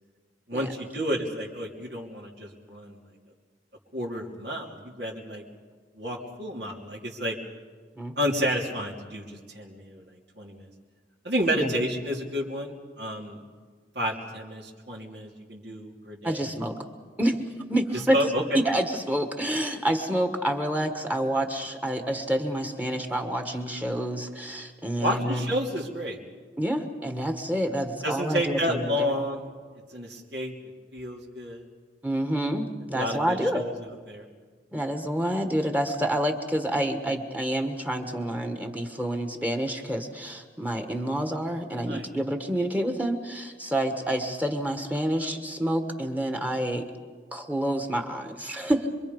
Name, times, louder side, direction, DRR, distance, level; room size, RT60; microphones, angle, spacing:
voice 1, 0.5-3.0 3.9-5.4 5.9-7.4 8.2-10.1 10.4-10.7 11.2-13.4 13.9-16.4 18.1-18.4 25.0-26.2 28.0-29.5 29.9-30.5 30.9-31.6 32.9-33.7 34.1-34.3 41.9-42.1, equal, 70° right, -3 dB, 3.1 m, -30 dB
voice 2, 16.2-16.8 17.2-17.4 17.7-18.2 18.5-25.5 26.6-29.1 32.0-33.6 34.7-46.9 47.3-48.9, right 1 dB, 10° right, 5 dB, 1.5 m, -28 dB
26.5 x 23.5 x 5.4 m, 1.6 s
head